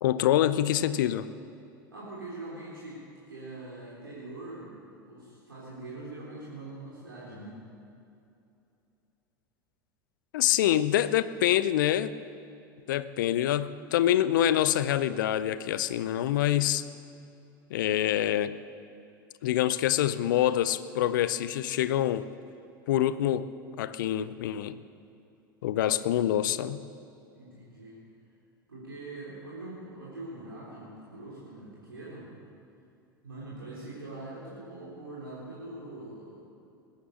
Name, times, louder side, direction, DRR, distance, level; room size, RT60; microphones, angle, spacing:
voice 1, 0.0-1.3 10.3-12.1 12.9-16.8 17.7-18.5 19.4-22.3 22.9-23.5 23.8-24.8 25.6-26.8, left 12 dB, 60° left, 15 dB, 0.6 m, -26 dB
voice 2, 1.9-3.0 3.3-4.8 5.0-7.6 27.3-28.0 28.7-32.3 33.2-36.5, right 2 dB, 80° right, -7 dB, 3.6 m, -43 dB
20.5 x 10.5 x 6.6 m, 2.7 s
figure-of-eight pair, 80°, 12 cm